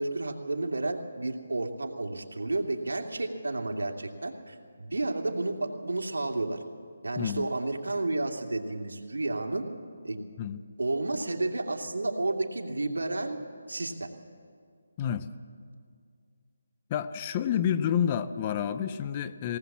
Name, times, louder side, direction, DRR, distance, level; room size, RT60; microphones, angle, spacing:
voice 1, 0.0-6.6 7.0-9.7 10.0-10.2 10.8-13.4 13.7-14.1, right 2 dB, 85° right, 3 dB, 2.5 m, -31 dB
voice 2, 7.2-7.5 10.4-10.6 15.0-15.3 16.9-19.6, left 9 dB, 25° left, 12 dB, 0.6 m, -29 dB
20.5 x 18.5 x 7.3 m, 2.2 s
figure-of-eight pair, 165°, 0 cm